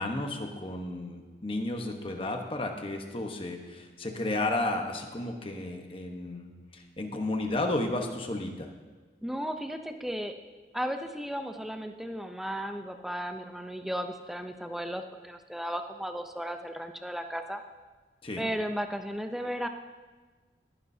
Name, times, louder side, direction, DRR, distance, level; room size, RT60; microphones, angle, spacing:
voice 1, 0.0-8.7 18.2-18.4, left 2 dB, 30° left, 3 dB, 1.1 m, -33 dB
voice 2, 9.2-10.3 10.7-17.6 18.4-19.7, equal, ahead, 6 dB, 0.6 m, -35 dB
20.5 x 9.7 x 2.8 m, 1.4 s
head